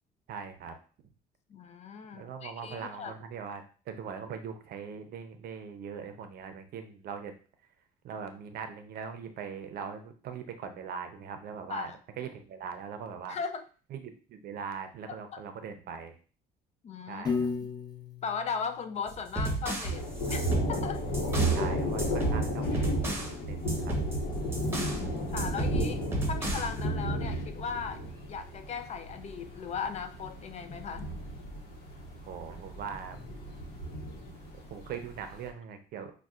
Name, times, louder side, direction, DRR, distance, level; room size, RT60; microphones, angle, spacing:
voice 1, 0.3-0.8 2.1-7.3 8.0-11.9 12.2-13.4 13.9-16.1 17.1-17.5 21.5-22.9 23.3-24.0 32.3-33.2 34.2-34.3 34.7-36.1, right 6 dB, 65° right, 7 dB, 0.6 m, -41 dB
voice 2, 1.5-3.1 11.7-12.0 13.3-13.6 15.3-15.4 16.8-17.2 18.2-21.0 24.7-28.0 28.3-31.1, left 6 dB, 40° left, 8 dB, 0.4 m, -38 dB
Piano, 17.2-19.5, left 5 dB, 25° left, 0.9 m, -35 dB
sound 1, 19.1-21.7 22.0-23.4 23.7-25.0 25.4-26.8, right 2 dB, 15° right, 0.9 m, -34 dB
Thunder, 19.8-35.4, right 1 dB, 70° left, 1.1 m, -33 dB
5.3 x 2.3 x 2.4 m, 0.38 s
cardioid pair, 110°, 17 cm